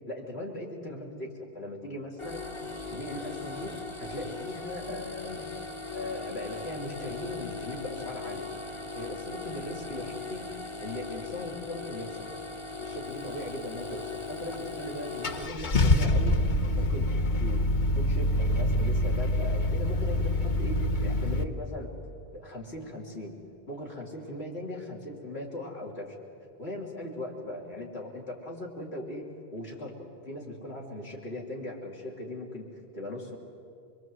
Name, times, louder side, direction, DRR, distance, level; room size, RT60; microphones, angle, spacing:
voice 1, 0.1-2.5 2.9-3.7 4.0-5.4 5.9-8.5 8.9-10.5 10.8-12.4 12.8-16.4 16.8-17.1 17.3-17.6 17.9-21.9 22.3-23.3 23.7-26.2 26.6-29.2 29.5-29.9 30.2-33.4, left 1 dB, 75° left, -1 dB, 3.5 m, -39 dB
sound 1, 2.2-15.5, left 3 dB, 30° left, 1.2 m, -39 dB
Car / Engine starting, 14.5-14.6 15.2-21.4, left 1 dB, 45° left, 1.0 m, -26 dB
24.5 x 22.5 x 8.0 m, 2.5 s
omnidirectional pair, 1.1 m